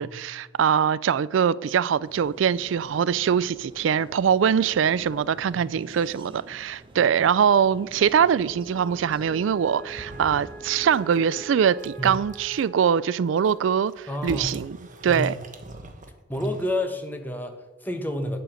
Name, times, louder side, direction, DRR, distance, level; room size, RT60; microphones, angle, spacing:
voice 1, 0.0-14.8 15.0-15.3, right 7 dB, 90° right, 0.4 m, -23 dB
sound 1, 2.0-11.5, right 1 dB, 30° right, 1.3 m, -47 dB
Wind instrument woodwind instrument, 7.0-15.4, right 4 dB, 65° right, 3.5 m, -46 dB
sound 2, 9.9-10.6 10.9-11.3 11.7-12.6 13.2-16.7, right 2 dB, 45° right, 1.3 m, -42 dB
voice 2, 14.1-14.5 15.0-15.3 16.3-18.4, left 1 dB, 10° left, 1.2 m, -30 dB
9.2 x 7.6 x 6.4 m
head